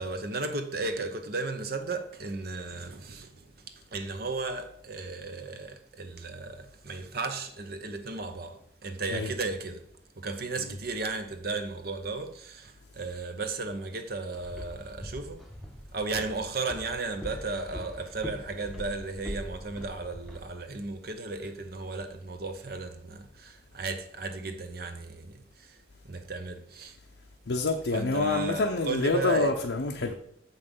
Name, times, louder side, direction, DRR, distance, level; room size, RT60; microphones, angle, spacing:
voice 1, 0.0-3.3 3.9-9.8 10.2-15.4 15.9-25.4 25.7-25.8 26.0-27.0 27.9-29.5, right 3 dB, 50° right, 0.8 m, -35 dB
Walk footsteps, 14.3-20.4, equal, ahead, 0.9 m, -42 dB
voice 2, 27.5-30.1, left 3 dB, 70° left, 0.7 m, -27 dB
7.2 x 5.5 x 5.4 m
head